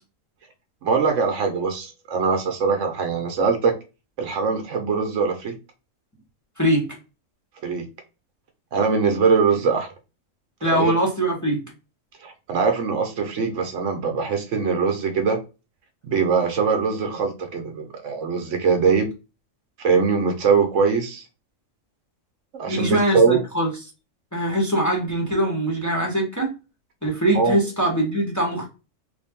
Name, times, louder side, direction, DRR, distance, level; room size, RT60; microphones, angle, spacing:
voice 1, 0.8-3.7 4.2-5.5 7.6-7.9 8.7-9.9 10.6-10.9 12.2-15.4 16.0-19.1 19.8-21.2 22.5-23.4 27.3-27.6, right 5 dB, 70° right, 1.0 m, -22 dB
voice 2, 6.6-6.9 10.6-11.6 22.7-23.7 24.3-26.5 27.0-28.7, right 1 dB, 15° left, 0.9 m, -22 dB
3.4 x 2.5 x 3.5 m
omnidirectional pair, 1.4 m